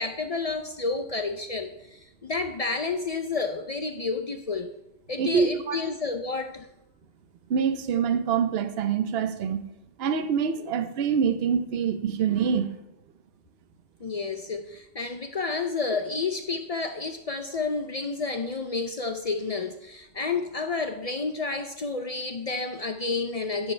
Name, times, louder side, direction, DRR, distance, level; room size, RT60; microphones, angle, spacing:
voice 1, 0.0-4.7 5.1-6.7 14.0-23.7, left 4 dB, 50° left, 6 dB, 0.4 m, -30 dB
voice 2, 5.2-5.8 7.5-9.6 10.0-12.7, right 7 dB, 60° right, 10 dB, 0.9 m, -25 dB
10.0 x 9.9 x 3.3 m, 0.86 s
omnidirectional pair, 1.2 m